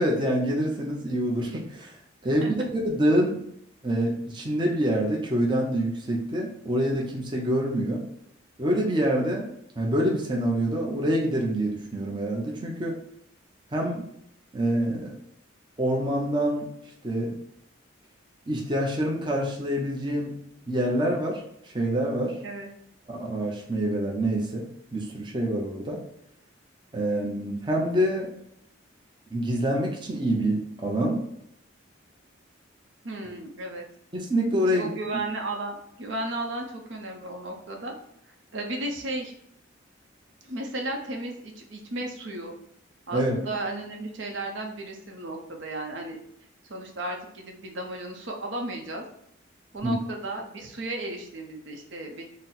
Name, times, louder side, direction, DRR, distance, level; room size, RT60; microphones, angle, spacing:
voice 1, 0.0-1.9 2.2-3.4 3.8-8.0 8.6-9.4 9.8-13.0 13.7-14.1 14.5-15.2 15.8-16.7 17.0-17.4 18.5-20.3 20.7-22.4 23.1-24.7 24.9-26.0 26.9-28.3 29.3-31.2 34.1-34.9 43.1-43.4 49.8-49.9, right 1 dB, 25° right, -1 dB, 0.6 m, -26 dB
voice 2, 33.0-33.8 34.7-37.9 38.5-39.3 40.4-42.5 43.1-46.2 46.7-49.0 49.7-52.2, right 2 dB, 70° right, 2 dB, 0.7 m, -34 dB
4.0 x 2.0 x 4.1 m, 0.74 s
head